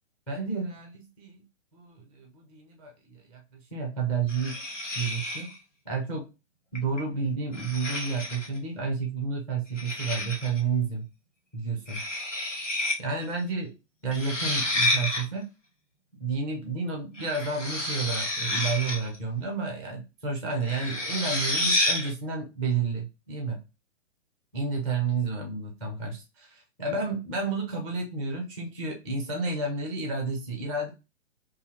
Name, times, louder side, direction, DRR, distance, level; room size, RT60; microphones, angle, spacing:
voice 1, 0.3-1.4 1.7-4.6 4.9-5.5 5.9-6.3 6.7-11.1 11.5-12.0 13.0-13.7 14.0-15.5 16.2-23.6 24.5-30.9, right 4 dB, 5° left, 0 dB, 0.4 m, -31 dB
sound 1, 4.3-5.6 6.7-7.0 7.5-8.6 9.8-10.6 11.9-13.0 13.2-13.3 14.1-15.2 17.2-19.1 20.6-22.1, left 2 dB, 85° left, 1.2 m, -29 dB
4.6 x 2.6 x 2.9 m, 0.28 s
figure-of-eight pair, 120°, 36 cm